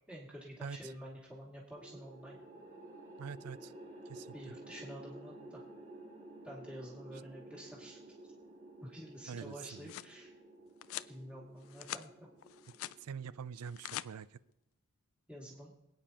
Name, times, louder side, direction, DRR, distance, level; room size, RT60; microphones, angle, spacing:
voice 1, 0.1-2.4 4.3-5.6 6.4-8.0 8.8-10.3 11.1-12.1 15.3-15.7, equal, 5° right, -5 dB, 2.2 m, -49 dB
voice 2, 0.6-0.9 3.2-3.7 4.1-4.3 9.3-9.9 13.0-14.4, right 6 dB, 80° right, 18 dB, 0.4 m, -45 dB
sound 1, 1.8-14.1, right 1 dB, 35° right, 2.5 m, -53 dB
sound 2, 9.5-10.1 10.8-11.1 11.6-12.1 12.4-13.0 13.6-14.1, left 13 dB, 65° left, 0.3 m, -44 dB
24.5 x 9.2 x 2.9 m, 0.87 s
head